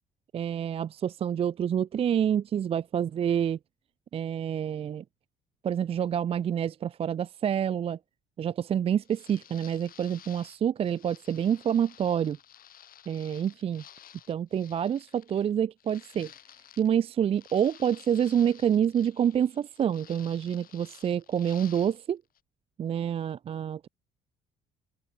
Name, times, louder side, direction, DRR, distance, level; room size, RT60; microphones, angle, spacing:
voice 1, 0.3-3.6 4.1-5.0 5.6-8.0 8.4-12.4 13.1-13.8 14.3-16.3 16.8-22.2 22.8-23.9, right 9 dB, 35° right, 0.4 m, -27 dB
sound 1, 9.0-17.0 17.3-22.1 22.4-22.5, left 11 dB, 60° left, 6.8 m, -53 dB
open air
cardioid pair, 110°, 17 cm